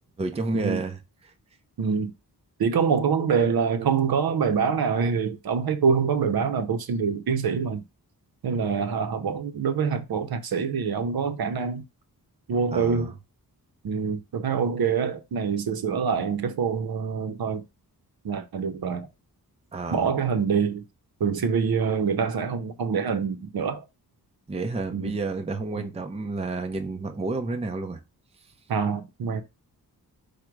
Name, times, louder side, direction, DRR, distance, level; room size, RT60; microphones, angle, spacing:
voice 1, 0.2-1.0 12.7-13.1 19.7-20.1 24.5-28.0, right 3 dB, 15° right, 0.5 m, -30 dB
voice 2, 1.8-2.1 2.6-7.8 8.4-11.8 12.5-13.1 13.8-17.6 18.2-19.1 19.9-20.8 21.2-23.8 24.9-25.1 25.8-25.9 28.7-29.4, right 6 dB, 70° right, 0.7 m, -25 dB
4.9 x 2.2 x 4.5 m
wide cardioid pair, 160°, 38 cm